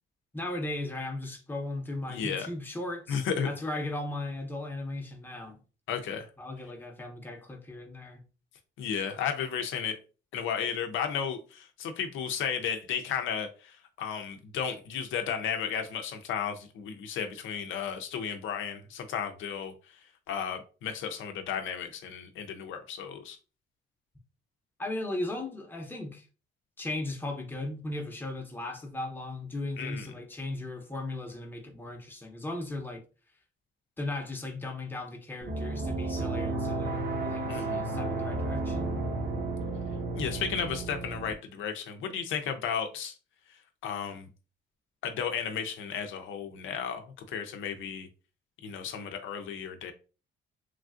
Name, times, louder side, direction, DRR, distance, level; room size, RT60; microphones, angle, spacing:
voice 1, 0.3-5.6 6.4-8.2 24.8-26.3 26.8-33.0 34.0-39.0, left 2 dB, 10° left, 0.7 m, -37 dB
voice 2, 2.1-2.5 3.1-3.5 5.9-6.3 8.8-10.0 10.3-19.7 20.3-23.4 29.8-30.1 37.5-37.8 40.1-43.1 43.8-44.3 45.0-48.1 48.6-49.9, left 7 dB, 80° left, 0.5 m, -34 dB
sound 1, 35.4-41.3, right 2 dB, 55° right, 0.9 m, -32 dB
3.2 x 2.4 x 2.4 m
cardioid pair, 90°, 20 cm